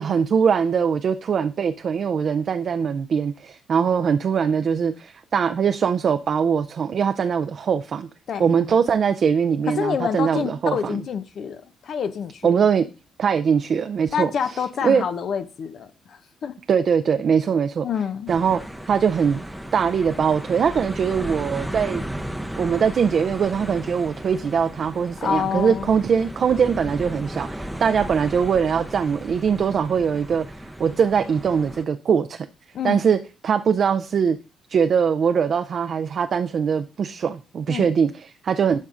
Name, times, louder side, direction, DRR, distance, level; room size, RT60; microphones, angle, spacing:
voice 1, 0.0-8.1 8.4-11.0 12.4-12.9 13.2-14.3 14.8-15.0 16.7-17.9 18.3-18.6 18.9-19.4 19.7-22.0 22.6-32.5 32.8-33.2 33.4-34.4 34.7-38.8, right 6 dB, 55° right, 0.4 m, -21 dB
voice 2, 9.8-12.5 14.1-16.5 17.8-18.3 25.2-25.9 32.7-33.0 37.7-37.9, left 7 dB, 60° left, 0.5 m, -27 dB
sound 1, 18.3-31.8, equal, 5° right, 0.6 m, -35 dB
11.5 x 5.4 x 2.5 m
cardioid pair, 90°, 0 cm